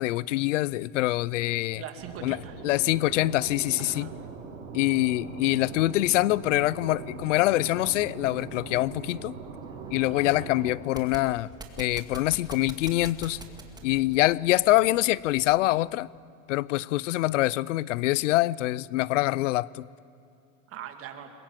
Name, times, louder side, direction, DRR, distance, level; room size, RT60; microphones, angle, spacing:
voice 1, 0.0-1.8 2.2-2.4 2.6-4.1 4.7-9.3 9.9-11.5 11.8-13.4 13.8-16.1 16.5-19.9, left 17 dB, 90° left, 0.6 m, -25 dB
voice 2, 1.7-2.5 3.8-4.1 10.1-10.4 20.7-21.3, right 9 dB, 35° right, 2.5 m, -42 dB
sound 1, 2.0-10.8, right 5 dB, 70° right, 6.1 m, -41 dB
sound 2, 9.5-15.7, right 2 dB, 10° right, 2.1 m, -46 dB
21.5 x 21.5 x 9.2 m
supercardioid pair, 135°, 36 cm